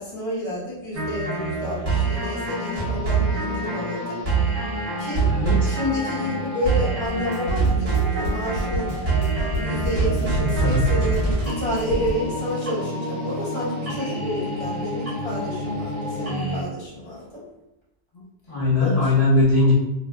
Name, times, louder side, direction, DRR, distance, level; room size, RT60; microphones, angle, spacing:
voice 1, 0.0-4.2 5.0-5.3 5.6-8.9 9.5-17.4 18.8-19.1, left 1 dB, 25° left, -7 dB, 0.9 m, -30 dB
sound 1, 0.9-16.6, right 3 dB, 35° right, 0.8 m, -25 dB
voice 2, 5.3-5.7 10.5-10.8 18.5-19.7, left 2 dB, 45° left, -8 dB, 0.6 m, -19 dB
sound 2, 7.0-12.1, equal, 70° left, 1.1 m, -30 dB
2.6 x 2.0 x 3.3 m, 0.92 s
omnidirectional pair, 1.3 m